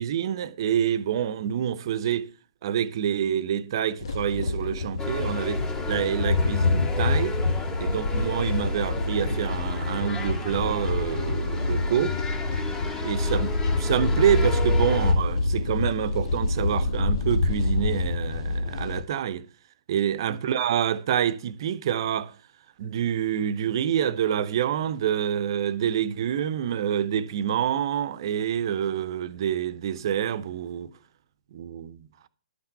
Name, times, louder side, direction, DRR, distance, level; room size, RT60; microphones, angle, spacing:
voice 1, 0.0-2.3 2.6-7.4 7.8-12.2 13.0-19.4 19.9-22.3 22.8-30.9 31.5-32.1, right 9 dB, 50° right, 0.9 m, -27 dB
sound 1, 4.0-19.0, left 3 dB, 60° left, 1.3 m, -26 dB
sound 2, 5.0-15.1, left 2 dB, 20° left, 2.5 m, -35 dB
12.0 x 5.8 x 6.8 m
figure-of-eight pair, 125°, 3 cm